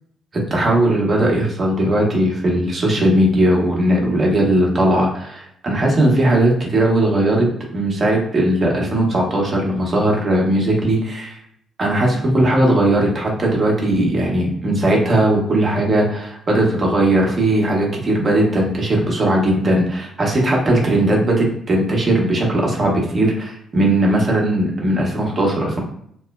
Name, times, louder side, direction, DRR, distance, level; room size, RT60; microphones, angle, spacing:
voice 1, 0.5-7.5 7.7-11.4 11.8-25.8, right 1 dB, 40° right, -1 dB, 0.8 m, -18 dB
3.0 x 2.0 x 2.2 m, 0.69 s
figure-of-eight pair, 40°, 0 cm